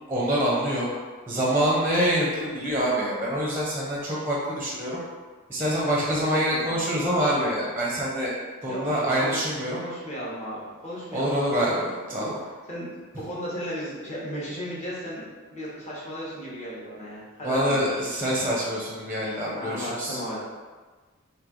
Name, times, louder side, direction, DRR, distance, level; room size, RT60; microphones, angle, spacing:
voice 1, 0.1-0.9 1.3-5.0 5.5-9.8 11.1-12.3 17.4-20.2, equal, 10° right, -5 dB, 0.6 m, -26 dB
voice 2, 6.0-6.8 8.7-9.4 9.7-12.9 13.2-15.2 15.5-18.0 19.5-20.4, equal, 35° left, -7 dB, 1.1 m, -35 dB
3.3 x 2.8 x 3.7 m, 1.4 s
head